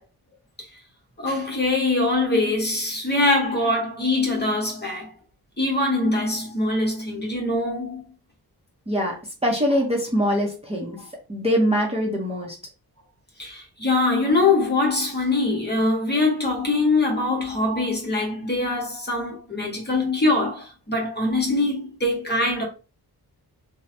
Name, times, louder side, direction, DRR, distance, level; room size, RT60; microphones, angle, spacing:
voice 1, 1.2-5.1 5.6-8.0 13.4-22.6, left 2 dB, 25° left, 0.9 m, -23 dB
voice 2, 8.9-9.2 9.4-12.6, equal, 15° right, 0.8 m, -23 dB
3.1 x 2.1 x 2.6 m
wide cardioid pair, 100°, 39 cm